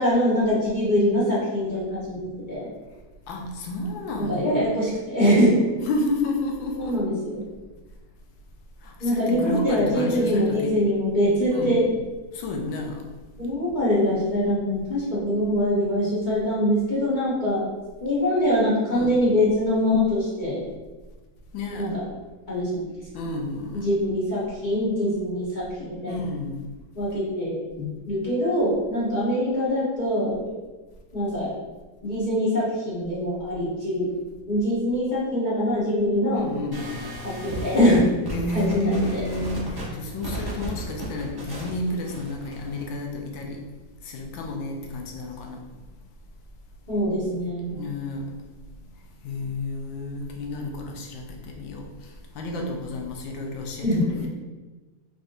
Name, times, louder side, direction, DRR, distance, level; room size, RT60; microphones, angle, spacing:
voice 1, 0.0-2.7 4.2-5.6 6.8-7.5 9.0-11.8 13.4-17.7 18.0-20.6 21.7-22.0 22.5-22.9 23.7-26.1 26.9-30.5 31.1-31.6 32.0-34.1 34.5-36.4 37.4-38.0 38.5-39.2 46.9-47.8 53.8-54.1, equal, 30° left, -8 dB, 1.1 m, -23 dB
voice 2, 3.3-4.7 5.8-7.1 8.8-10.8 11.5-11.8 12.3-13.0 18.9-19.3 21.5-21.9 23.1-24.0 26.1-26.6 36.3-37.0 38.3-43.7 44.0-45.6 47.7-48.4 49.2-54.3, left 2 dB, 80° left, 1 dB, 1.4 m, -31 dB
sound 1, 36.7-42.9, right 1 dB, 25° right, 0.5 m, -34 dB
3.8 x 3.5 x 2.6 m, 1.2 s
omnidirectional pair, 2.1 m